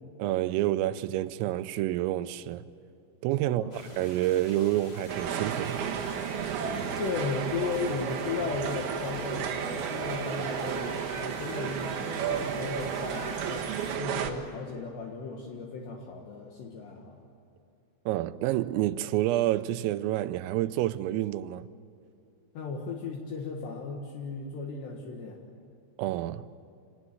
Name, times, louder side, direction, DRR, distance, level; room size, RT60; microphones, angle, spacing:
voice 1, 0.2-2.6 3.2-5.8 18.1-21.7 26.0-26.5, right 14 dB, 85° right, 3.4 m, -28 dB
voice 2, 3.4-3.8 7.0-17.2 22.6-25.4, left 4 dB, 65° left, 3.5 m, -36 dB
sound 1, 3.7-14.0, left 1 dB, 30° left, 2.3 m, -47 dB
sound 2, 5.1-14.3, right 7 dB, 65° right, 2.8 m, -33 dB
27.0 x 19.0 x 9.6 m
omnidirectional pair, 5.9 m